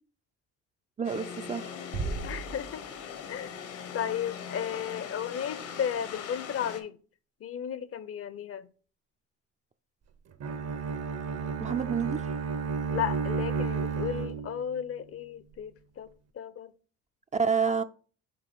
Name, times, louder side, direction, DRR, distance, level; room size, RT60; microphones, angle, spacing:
sound 1, 1.0-6.8, left 7 dB, 85° left, 1.3 m, -40 dB
voice 1, 1.0-1.7 11.6-12.3 17.3-17.8, right 6 dB, 25° right, 0.4 m, -28 dB
Bass drum, 1.9-3.4, right 4 dB, 90° right, 1.2 m, -36 dB
voice 2, 2.2-2.8 3.3-3.6 3.9-7.0 7.4-8.7 12.9-16.1 16.3-16.7, left 9 dB, 50° left, 0.6 m, -34 dB
Bowed string instrument, 10.4-14.8, right 5 dB, 55° right, 0.8 m, -32 dB
5.8 x 3.8 x 5.2 m
cardioid pair, 90°, 30 cm